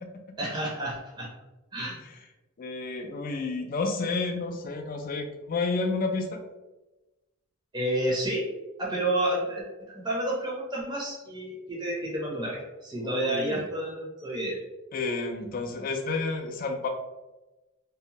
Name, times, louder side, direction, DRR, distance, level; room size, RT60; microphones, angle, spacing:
voice 1, 0.4-1.3 1.7-2.0 7.7-8.5 8.8-14.6, right 1 dB, 20° right, -5 dB, 0.6 m, -30 dB
voice 2, 2.6-6.4 13.0-13.6 14.9-16.9, left 3 dB, 40° left, 4 dB, 0.3 m, -30 dB
2.7 x 2.1 x 2.9 m, 1.1 s
head